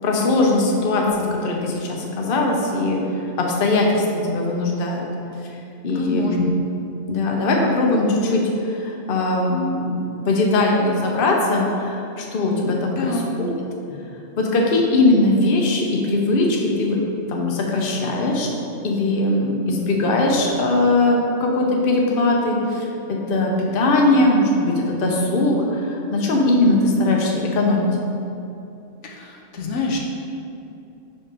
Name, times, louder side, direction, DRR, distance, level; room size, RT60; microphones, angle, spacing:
voice 1, 0.0-3.0 3.4-5.1 5.8-6.4 7.1-13.5 13.9-14.0 14.4-17.0 17.3-18.5 18.8-27.9, left 2 dB, 55° left, -1 dB, 0.9 m, -20 dB
voice 2, 5.9-6.5 13.0-13.3 29.0-30.0, left 3 dB, 80° left, 0 dB, 1.0 m, -27 dB
5.3 x 4.1 x 5.1 m, 2.7 s
omnidirectional pair, 1.2 m